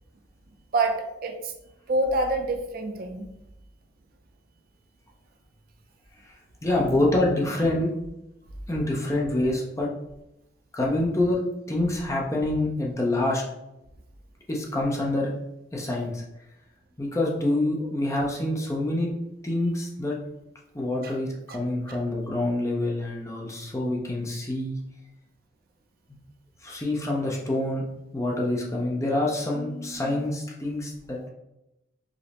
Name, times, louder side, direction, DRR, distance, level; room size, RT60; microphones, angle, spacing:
voice 1, 0.7-1.5 1.9-3.3 21.0-21.1 21.5-21.6 21.9-22.0, right 2 dB, 50° right, 4 dB, 0.4 m, -27 dB
voice 2, 6.6-7.9 8.7-9.9 10.7-11.4 11.7-13.4 14.5-15.3 15.7-16.2 17.0-19.1 19.4-20.2 20.7-24.8 26.6-27.8 28.1-31.3, left 1 dB, 15° left, -2 dB, 0.5 m, -26 dB
4.9 x 2.0 x 2.8 m, 0.91 s
head